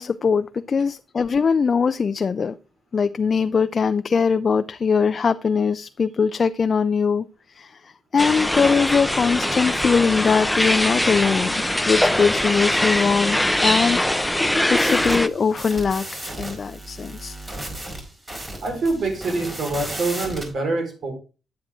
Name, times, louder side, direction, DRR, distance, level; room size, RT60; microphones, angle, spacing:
voice 1, 0.0-2.5 2.9-7.3 7.5-7.8 8.1-14.1 14.7-17.4, left 5 dB, 45° left, 0.4 m, -21 dB
sound 1, 8.2-15.3, left 1 dB, 5° left, 0.7 m, -22 dB
sound 2, 14.7-20.5, right 1 dB, 30° right, 4.6 m, -35 dB
voice 2, 18.6-21.1, right 3 dB, 70° right, 4.3 m, -25 dB
9.6 x 8.9 x 3.7 m
cardioid pair, 90°, 0 cm